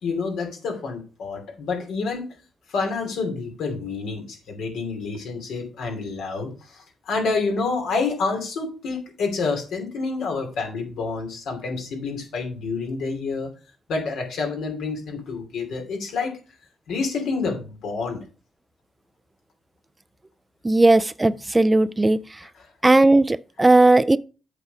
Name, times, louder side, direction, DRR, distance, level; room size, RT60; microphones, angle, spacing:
voice 1, 0.0-2.3 2.7-13.5 13.9-16.4 16.9-18.2, left 4 dB, 85° left, 2.8 m, -28 dB
voice 2, 20.6-22.2 22.8-24.2, right 2 dB, 20° right, 0.4 m, -17 dB
8.2 x 5.9 x 4.7 m
cardioid pair, 70°, 0 cm